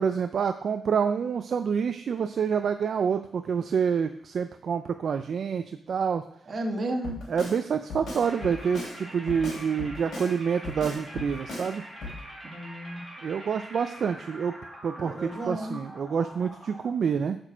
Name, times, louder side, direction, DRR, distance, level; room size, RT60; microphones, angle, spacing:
voice 1, 0.0-6.2 7.3-11.8 13.2-14.5 14.8-17.4, right 6 dB, 55° right, 8 dB, 0.4 m, -27 dB
voice 2, 6.5-7.2 12.5-13.0 15.0-15.8, right 1 dB, 40° right, 2 dB, 1.4 m, -33 dB
Drum kit, 7.0-7.6 7.9-8.9 9.3-10.3 10.6-11.7 12.0-12.2, left 2 dB, 65° left, 3.6 m, -37 dB
sound 1, 8.2-16.9, equal, 5° right, 2.0 m, -44 dB
6.7 x 6.1 x 6.0 m, 0.68 s
wide cardioid pair, 135°, 0 cm